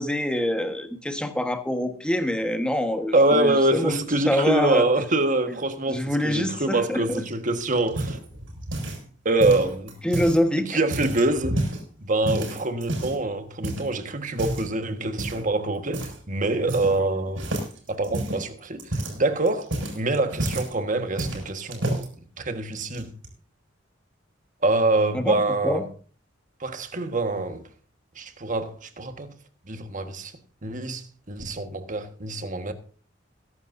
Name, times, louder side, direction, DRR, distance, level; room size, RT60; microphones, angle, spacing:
voice 1, 0.0-4.8 5.9-7.2 10.0-10.7 25.1-25.8, equal, 5° left, 1.4 m, -25 dB
voice 2, 3.1-8.2 9.2-9.9 10.7-11.7 12.0-17.5 17.9-22.1 22.4-23.1 24.6-25.8 26.6-27.6 28.1-29.3 29.7-30.3 30.6-32.7, right 2 dB, 40° right, 1.6 m, -25 dB
sound 1, 7.1-9.1 9.4-10.4 10.8-11.8 12.2-13.2 13.6-13.9 14.3-14.7 15.2-15.5 15.9-16.2 16.4-17.1 17.4-20.7 21.2-22.1 22.7-23.3, right 1 dB, 75° right, 6.2 m, -30 dB
22.0 x 11.0 x 2.7 m
head